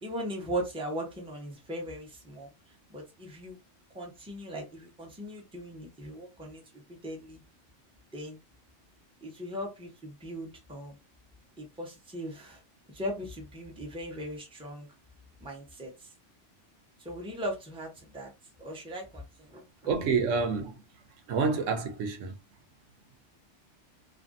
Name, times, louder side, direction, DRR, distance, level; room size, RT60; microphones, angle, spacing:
voice 1, 0.0-2.5 2.9-3.6 3.9-7.4 8.1-8.4 9.2-11.0 11.6-12.6 12.9-14.9 15.4-16.1 17.0-18.3 18.6-19.6, equal, 5° right, 0.7 m, -39 dB
voice 2, 19.9-20.7 21.3-22.3, right 5 dB, 85° right, 1.0 m, -28 dB
2.6 x 2.6 x 2.5 m
omnidirectional pair, 1.3 m